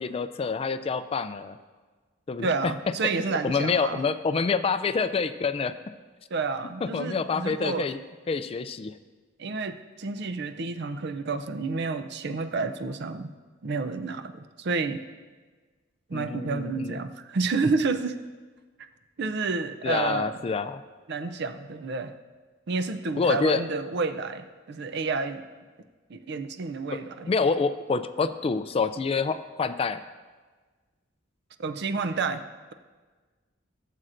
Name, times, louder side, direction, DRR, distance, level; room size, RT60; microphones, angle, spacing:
voice 1, 0.0-1.6 2.3-2.5 3.3-5.7 6.8-8.0 8.3-9.0 16.1-17.0 19.8-20.8 23.2-23.6 26.9-27.0 27.3-30.0, left 4 dB, 30° left, 11 dB, 0.3 m, -27 dB
voice 2, 2.4-4.0 6.3-7.9 9.4-13.3 13.6-15.0 16.1-18.2 19.2-20.4 21.1-22.1 22.7-25.5 26.1-27.3 31.6-32.5, right 4 dB, 60° right, 10 dB, 0.5 m, -30 dB
16.5 x 7.5 x 2.6 m, 1.4 s
head